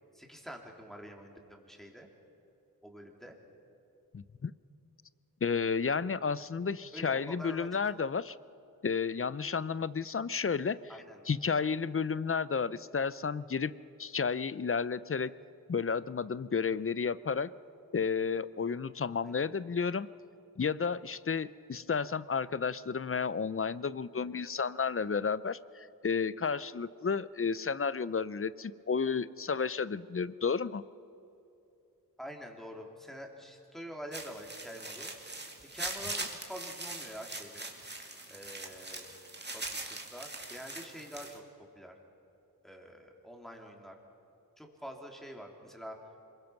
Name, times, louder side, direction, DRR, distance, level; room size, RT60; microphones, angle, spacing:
voice 1, 0.1-2.1 2.8-3.4 6.9-7.8 10.9-11.2 19.2-19.5 32.2-35.1 35.7-37.7 38.3-39.0 39.5-41.4 41.8-41.9 42.6-44.0 44.6-46.0, equal, ahead, 1 dB, 3.4 m, -46 dB
voice 2, 4.1-4.5 5.4-8.4 8.8-10.8 11.3-13.7 14.0-15.3 15.7-17.5 17.9-20.1 20.6-30.8, left 5 dB, 35° left, 17 dB, 0.6 m, -32 dB
sound 1, 34.1-41.4, right 2 dB, 30° right, 2.5 m, -41 dB
26.5 x 22.5 x 6.0 m, 2.7 s
wide cardioid pair, 65°, 37 cm